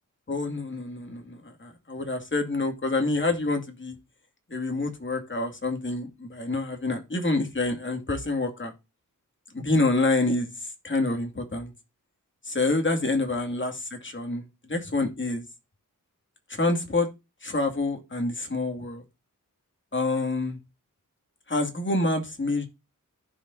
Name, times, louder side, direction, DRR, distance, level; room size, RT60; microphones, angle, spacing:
voice 1, 0.3-4.0 4.5-8.7 9.5-11.7 12.4-15.4 16.5-17.1 17.4-19.0 19.9-20.6 21.5-22.7, left 2 dB, 35° left, 2.4 m, -27 dB
15.0 x 5.2 x 2.7 m
wide cardioid pair, 110°, 33 cm